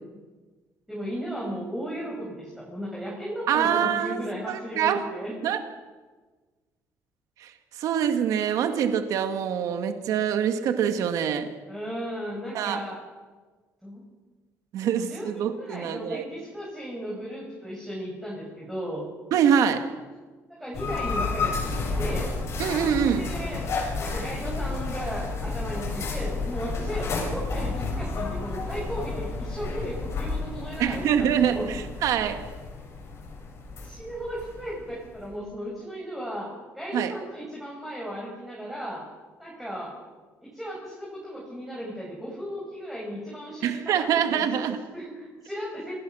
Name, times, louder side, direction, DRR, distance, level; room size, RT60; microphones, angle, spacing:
voice 1, 0.9-5.3 11.7-13.0 13.8-14.0 14.8-19.0 20.5-22.3 23.0-23.7 24.0-31.7 33.8-36.5 36.7-39.0 39.4-39.9 40.4-44.1 44.3-44.6 44.9-45.9, equal, 5° right, -5 dB, 7.6 m, -35 dB
voice 2, 3.5-5.0 5.4-5.6 7.4-11.5 12.5-12.8 14.7-16.2 19.3-19.8 22.6-23.3 30.8-32.4 36.9-37.1 43.6-44.8, right 8 dB, 70° right, 7 dB, 2.0 m, -25 dB
sound 1, 20.7-35.3, left 3 dB, 50° left, 7.5 m, -31 dB
28.0 x 21.0 x 6.4 m, 1.3 s
cardioid pair, 130°, 6 cm